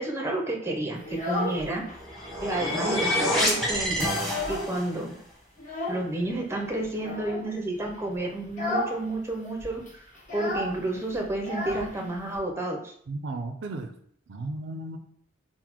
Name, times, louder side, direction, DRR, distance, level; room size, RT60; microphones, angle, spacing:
voice 1, 0.0-1.8 2.4-4.1 4.5-5.2 5.9-9.8 10.3-12.9, right 2 dB, 15° right, 1 dB, 0.5 m, -30 dB
Child speech kid speaking, 1.0-2.0 2.3-3.1 3.4-3.5 3.9-5.0 5.6-6.1 6.9-7.5 7.9-8.1 8.5-9.0 9.3-9.4 9.6-12.4, left 2 dB, 45° left, 1.4 m, -33 dB
sound 1, 1.9-4.9, equal, ahead, 1.0 m, -27 dB
voice 2, 13.1-13.9 14.3-15.0, right 2 dB, 65° right, 7 dB, 0.4 m, -34 dB
3.9 x 2.1 x 4.4 m, 0.64 s
head